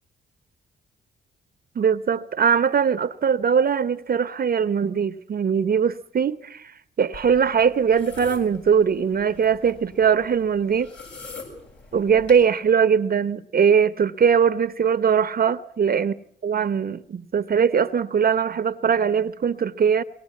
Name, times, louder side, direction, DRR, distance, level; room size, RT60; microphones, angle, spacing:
voice 1, 1.8-10.9 11.9-16.1 16.4-20.0, right 7 dB, 50° right, 0.8 m, -21 dB
sound 1, 7.1-12.4, left 4 dB, 65° left, 7.5 m, -43 dB
23.0 x 18.5 x 8.4 m
cardioid pair, 65°, 20 cm